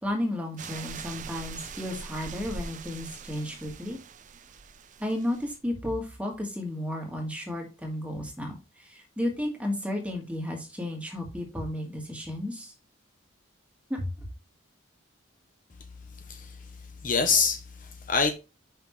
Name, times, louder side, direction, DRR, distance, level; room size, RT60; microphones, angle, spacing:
voice 1, 0.0-4.0 5.0-12.7 13.9-14.1, left 1 dB, 5° right, 1.5 m, -33 dB
sound 1, 0.6-5.6, right 5 dB, 40° right, 0.5 m, -42 dB
voice 2, 16.3-16.7 17.0-18.3, left 5 dB, 40° left, 0.6 m, -26 dB
5.7 x 5.7 x 3.1 m
head